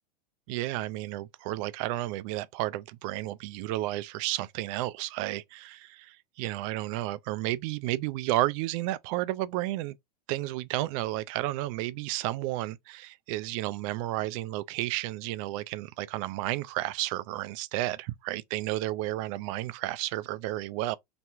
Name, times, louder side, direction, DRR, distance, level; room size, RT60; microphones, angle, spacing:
voice 1, 0.5-10.0 10.3-21.0, right 16 dB, 50° right, 0.5 m, -32 dB
3.0 x 2.9 x 3.5 m
hypercardioid pair, 105°, 21 cm